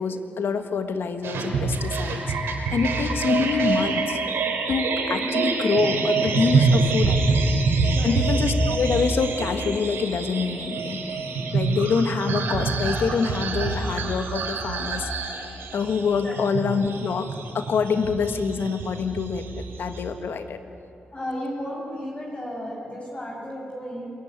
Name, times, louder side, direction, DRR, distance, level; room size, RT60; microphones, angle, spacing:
voice 1, 0.0-2.2 2.7-4.2 4.7-7.2 8.0-11.0 11.5-15.1 15.7-20.6, left 5 dB, 75° left, 8 dB, 1.7 m, -26 dB
sound 1, 1.2-20.0, right 3 dB, 85° right, 3.5 m, -26 dB
voice 2, 5.1-5.5 8.0-8.2 16.2-16.4 21.1-24.1, equal, 30° left, -2 dB, 6.4 m, -34 dB
27.0 x 15.5 x 9.6 m, 2.6 s
cardioid pair, 50°, 4 cm